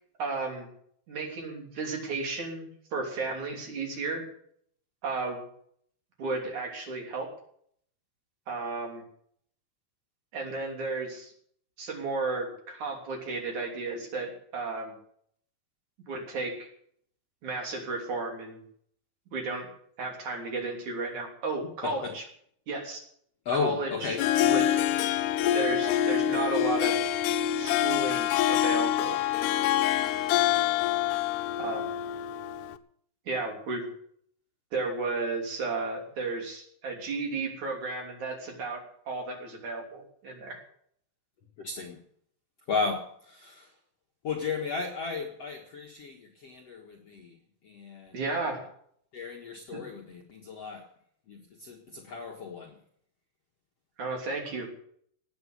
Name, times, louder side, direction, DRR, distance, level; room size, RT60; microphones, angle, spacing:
voice 1, 0.2-0.7 1.1-4.2 5.0-5.4 6.2-7.3 8.5-9.0 10.3-11.3 11.8-15.0 16.1-16.7 17.4-18.6 19.3-19.7 20.0-22.2 22.7-23.0 23.6-24.1 24.5-24.6 25.5-27.0 27.6-29.2 31.6-31.9 33.3-33.9 34.7-40.6 48.1-48.6 49.7-49.8 54.0-54.7, right 3 dB, 50° right, 1 dB, 4.4 m, -33 dB
voice 2, 21.8-22.2 23.5-24.3 41.6-42.0 42.7-43.8 44.2-48.2 49.1-50.9 51.3-52.8, left 5 dB, 50° left, 0 dB, 2.1 m, -34 dB
Harp, 24.0-32.8, left 11 dB, 85° left, 2.9 m, -26 dB
18.5 x 8.6 x 8.0 m, 0.65 s
omnidirectional pair, 4.8 m